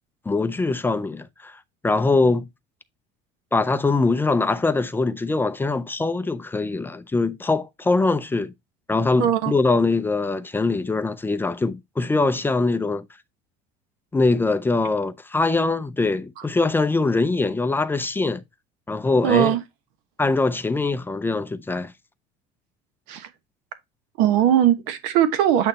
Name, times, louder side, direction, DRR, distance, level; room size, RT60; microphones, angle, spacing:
voice 1, 0.3-1.6 1.8-2.5 3.5-8.5 8.9-13.0 14.1-18.4 18.9-19.5 20.2-21.9, left 3 dB, 10° left, 0.4 m, -22 dB
voice 2, 9.2-9.5 16.4-16.5 19.2-19.6 23.1-23.3 24.2-25.7, right 10 dB, 80° right, 1.2 m, -19 dB
8.7 x 3.1 x 4.1 m
cardioid pair, 155°, 21 cm